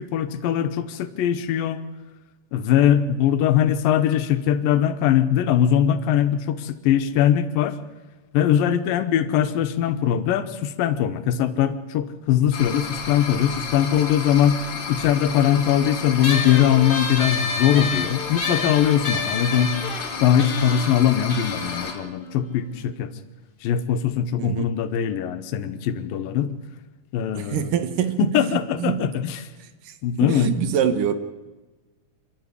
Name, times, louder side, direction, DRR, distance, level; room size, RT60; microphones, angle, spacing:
voice 1, 0.0-1.8 2.5-7.8 8.3-14.6 14.9-19.8 20.2-23.1 23.6-26.5 27.1-27.7 28.2-29.4 30.0-30.5, left 10 dB, 85° left, 10 dB, 2.8 m, -21 dB
sound 1, 12.5-21.9, left 5 dB, 45° left, 3.0 m, -32 dB
sound 2, 16.2-23.0, left 4 dB, 30° left, 1.0 m, -30 dB
voice 2, 24.4-24.7 27.3-29.1 29.8-29.9 30.2-31.2, right 9 dB, 75° right, 10 dB, 2.7 m, -25 dB
27.0 x 13.0 x 9.8 m, 1.2 s
omnidirectional pair, 4.0 m